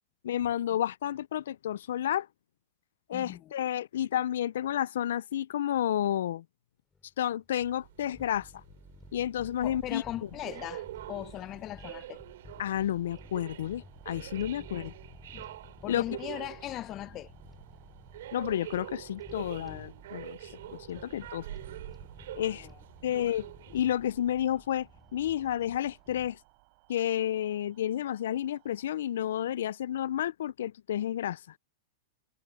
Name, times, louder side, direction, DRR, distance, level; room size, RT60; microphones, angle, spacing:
voice 1, 0.2-2.3 3.1-6.4 7.2-8.5 9.1-10.0 12.6-14.9 15.9-16.0 18.3-20.4 20.7-21.5 22.3-22.7 23.0-23.5 23.7-26.4 26.9-31.4, left 11 dB, 75° left, 0.4 m, -31 dB
voice 2, 3.1-3.5 9.6-12.2 14.6-14.7 15.3-15.5 15.8-17.3 21.1-21.2 22.6-22.8 23.1-23.2, left 14 dB, 35° left, 0.7 m, -39 dB
sound 1, 6.9-26.4, left 4 dB, 15° left, 2.9 m, -54 dB
sound 2, 7.6-24.3, right 14 dB, 70° right, 3.1 m, -46 dB
sound 3, 10.0-28.9, right 35 dB, 50° right, 6.3 m, -60 dB
hypercardioid pair, 125°, 0 cm